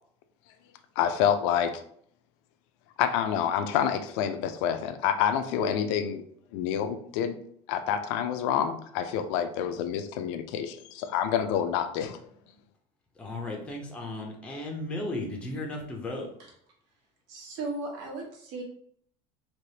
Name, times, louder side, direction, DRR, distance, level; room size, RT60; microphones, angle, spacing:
voice 1, 1.0-1.8 3.0-6.2 6.5-7.4 7.7-12.2, left 9 dB, 85° left, 9 dB, 0.4 m, -27 dB
voice 2, 13.2-16.3, left 2 dB, 10° left, 0 dB, 0.5 m, -35 dB
voice 3, 17.3-18.6, right 3 dB, 85° right, -2 dB, 1.3 m, -36 dB
3.3 x 2.9 x 2.7 m, 0.65 s
cardioid pair, 160°, 15 cm